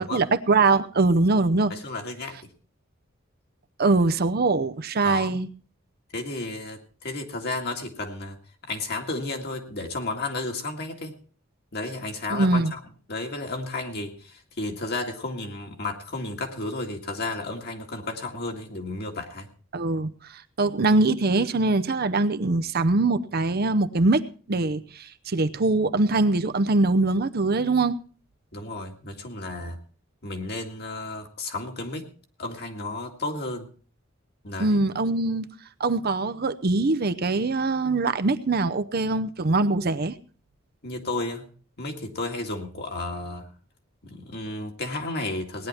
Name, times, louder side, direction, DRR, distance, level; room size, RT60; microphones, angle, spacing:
voice 1, 0.0-1.7 3.8-5.5 12.3-12.7 19.7-27.9 34.6-35.5 35.8-40.1, right 3 dB, 50° right, 11 dB, 0.7 m, -23 dB
voice 2, 1.7-2.4 5.0-5.4 6.1-8.4 8.6-11.1 11.7-12.8 13.1-19.5 28.5-29.8 30.2-32.0 32.4-33.7 34.4-34.8 40.8-41.5 41.8-43.5 44.0-45.7, left 2 dB, 55° left, 3 dB, 2.1 m, -33 dB
18.0 x 10.0 x 4.3 m, 0.39 s
head